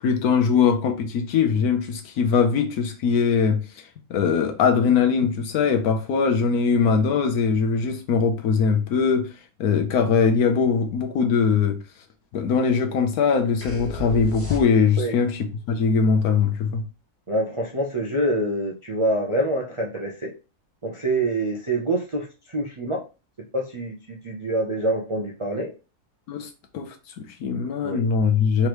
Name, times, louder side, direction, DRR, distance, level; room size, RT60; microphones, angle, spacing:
voice 1, 0.0-3.6 4.1-9.3 9.6-11.8 12.3-16.8 26.3-26.5 26.7-28.7, left 5 dB, 80° left, 1.2 m, -21 dB
sound 1, 13.6-15.1, equal, 10° left, 0.9 m, -34 dB
voice 2, 17.3-20.3 20.8-23.0 23.5-25.7 27.8-28.0, right 1 dB, 50° right, 0.3 m, -26 dB
3.7 x 3.3 x 3.0 m
omnidirectional pair, 1.6 m